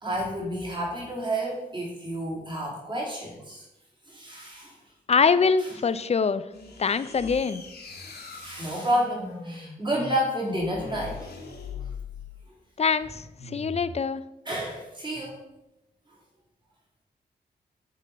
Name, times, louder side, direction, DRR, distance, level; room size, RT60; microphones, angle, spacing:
voice 1, 0.0-3.6 4.1-4.7 8.3-11.2 14.5-15.4, right 1 dB, 25° right, -3 dB, 2.2 m, -30 dB
voice 2, 5.1-6.4 6.8-7.6 12.8-14.2, left 5 dB, 35° left, 13 dB, 0.4 m, -24 dB
sound 1, 6.5-12.5 13.3-14.0, left 4 dB, 65° left, 1.3 m, -41 dB
7.3 x 3.8 x 4.2 m, 0.91 s
cardioid pair, 50°, 18 cm